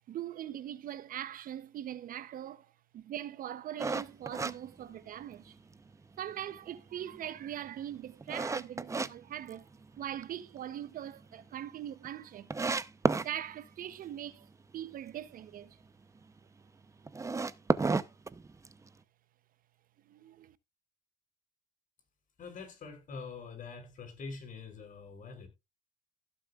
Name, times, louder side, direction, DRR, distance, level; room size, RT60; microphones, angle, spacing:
voice 1, 0.1-5.6 6.2-9.7 10.0-12.5 13.2-15.8 20.1-20.6, right 11 dB, 55° right, 0.7 m, -41 dB
sound 1, 3.8-5.5 5.9-6.0 6.6-9.1 9.5-10.2 10.6-10.7 11.1-11.2 11.3-11.4 12.0-12.1 12.5-13.3 17.1-18.9, right 4 dB, 20° right, 0.7 m, -32 dB
voice 2, 22.4-25.5, left 4 dB, 50° left, 6.3 m, -45 dB
16.0 x 7.0 x 2.4 m
cardioid pair, 110°, 17 cm